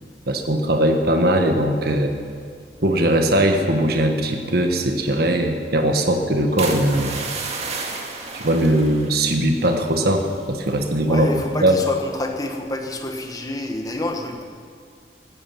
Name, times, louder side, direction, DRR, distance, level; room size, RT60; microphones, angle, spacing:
voice 1, 0.3-2.1 2.8-7.1 8.3-11.3 11.6-11.8, right 1 dB, 60° right, 4 dB, 1.5 m, -20 dB
sound 1, 6.6-10.3 10.6-11.0 11.4-11.7, right 4 dB, 40° right, 2.0 m, -32 dB
voice 2, 11.1-14.4, left 1 dB, 20° left, 3 dB, 1.4 m, -28 dB
17.0 x 14.5 x 5.9 m, 2.2 s
head